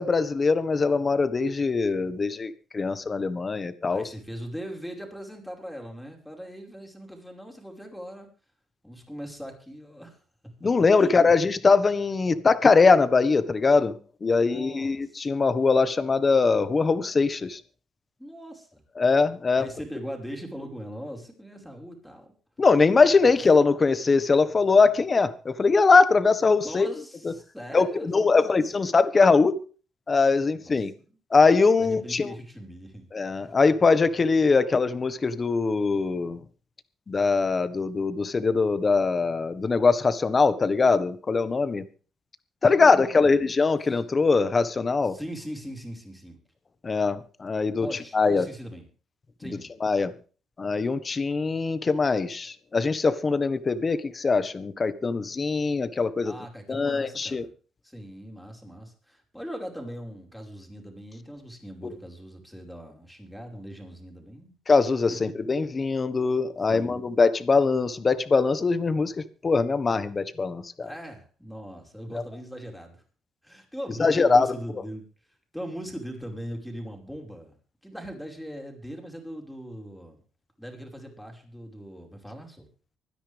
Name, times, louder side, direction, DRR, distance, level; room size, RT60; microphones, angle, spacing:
voice 1, 0.0-4.0 10.6-13.9 14.2-17.6 19.0-19.7 22.6-26.9 27.7-27.9 28.1-29.6 30.1-30.9 31.3-32.3 33.1-36.4 37.1-41.8 42.6-45.2 46.8-47.9 48.1-48.5 49.8-50.1 50.6-56.3 56.7-57.5 64.7-69.1 69.4-70.9 74.0-74.5, left 4 dB, 35° left, 1.5 m, -22 dB
voice 2, 3.9-8.3 8.8-10.2 11.0-11.1 14.3-15.2 18.2-18.8 19.6-22.3 23.2-23.3 26.6-28.9 30.5-30.7 31.1-31.2 31.8-33.1 33.3-33.6 42.7-43.4 43.8-44.0 45.0-46.4 47.8-48.9 49.4-49.7 56.2-57.5 57.8-64.6 65.1-65.2 66.7-67.1 70.8-73.0 73.4-75.1 75.5-77.5 77.8-80.2 80.6-82.7, equal, ahead, 5.2 m, -40 dB
25.0 x 10.0 x 3.5 m
cardioid pair, 90°, 0 cm